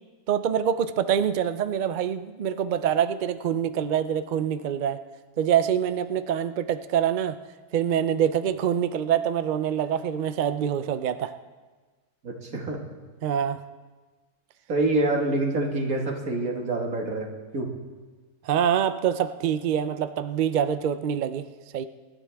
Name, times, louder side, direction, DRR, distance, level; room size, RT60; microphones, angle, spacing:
voice 1, 0.3-5.0 5.4-7.4 7.7-11.4 13.2-13.6 18.4-21.5 21.7-21.8, right 9 dB, 85° right, 11 dB, 0.4 m, -25 dB
voice 2, 12.2-12.8 14.7-17.7, right 2 dB, 65° right, 1 dB, 2.3 m, -26 dB
23.5 x 12.0 x 3.5 m, 1.3 s
omnidirectional pair, 1.6 m